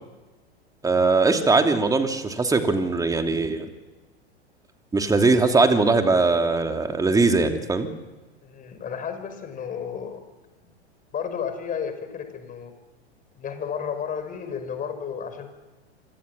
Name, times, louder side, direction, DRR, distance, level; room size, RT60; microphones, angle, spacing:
voice 1, 0.8-3.7 4.9-7.9, right 3 dB, 10° right, 5 dB, 2.9 m, -20 dB
voice 2, 8.4-10.2 11.1-12.7 13.4-15.5, left 7 dB, 25° left, 8 dB, 5.4 m, -32 dB
27.0 x 26.0 x 7.4 m, 1.2 s
figure-of-eight pair, 95°, 33 cm